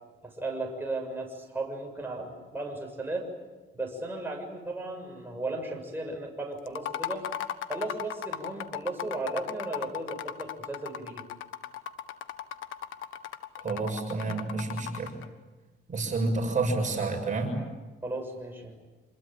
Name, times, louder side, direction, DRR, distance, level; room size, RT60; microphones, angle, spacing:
voice 1, 0.2-3.3 3.7-7.3 7.7-11.2 18.0-18.8, right 2 dB, 10° right, 0 dB, 6.9 m, -35 dB
sound 1, 6.7-15.3, left 10 dB, 85° left, 1.5 m, -37 dB
voice 2, 13.6-15.2 15.9-17.6, right 3 dB, 40° right, 2 dB, 7.0 m, -29 dB
27.5 x 22.0 x 9.0 m, 1.2 s
cardioid pair, 90°, 20 cm